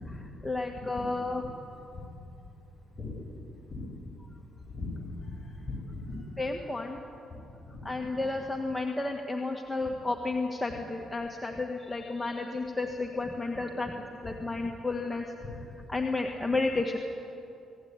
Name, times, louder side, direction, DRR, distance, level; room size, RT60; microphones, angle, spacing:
voice 1, 0.4-1.4 6.4-7.0 7.8-13.9 14.2-15.2 15.9-17.0, left 3 dB, 10° left, 2 dB, 1.9 m, -32 dB
voice 2, 4.6-4.9 5.2-6.5 7.7-7.8 15.4-15.5, left 3 dB, 30° left, -2 dB, 7.8 m, -39 dB
25.5 x 18.0 x 9.7 m, 2.7 s
cardioid pair, 90°, 0 cm